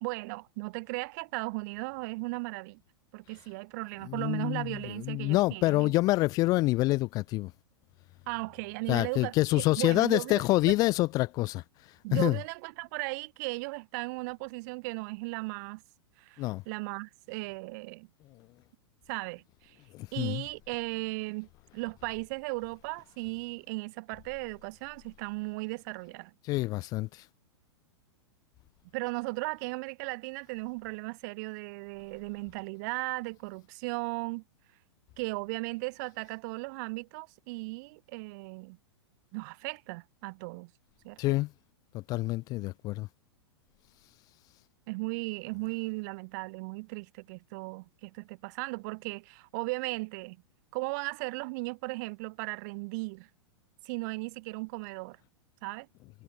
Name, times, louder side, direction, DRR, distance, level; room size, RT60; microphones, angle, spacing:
voice 1, 0.0-2.8 3.1-5.9 8.3-10.4 12.0-15.8 16.2-18.1 19.1-19.8 20.1-21.5 21.7-26.3 28.9-34.4 35.2-38.8 39.3-40.7 41.0-41.2 44.9-50.4 50.7-53.3 53.8-55.2 55.6-55.9, right 27 dB, 40° right, 0.8 m, -36 dB
voice 2, 4.0-7.5 8.9-11.6 12.1-12.4 16.4-16.6 19.9-20.4 26.4-27.3 41.2-41.5 41.9-43.1, left 19 dB, 25° left, 0.3 m, -27 dB
figure-of-eight pair, 100°, 14 cm